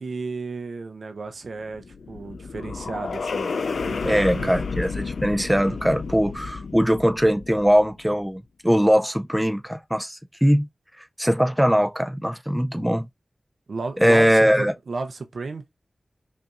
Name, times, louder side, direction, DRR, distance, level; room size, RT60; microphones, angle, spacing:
voice 1, 0.0-4.5 13.7-15.6, right 3 dB, 75° right, 0.6 m, -33 dB
sound 1, 1.6-8.0, left 4 dB, 85° left, 0.3 m, -31 dB
voice 2, 4.0-10.7 11.2-13.1 14.0-14.7, equal, 5° right, 0.5 m, -21 dB
5.2 x 2.6 x 2.4 m
cardioid pair, 50°, 0 cm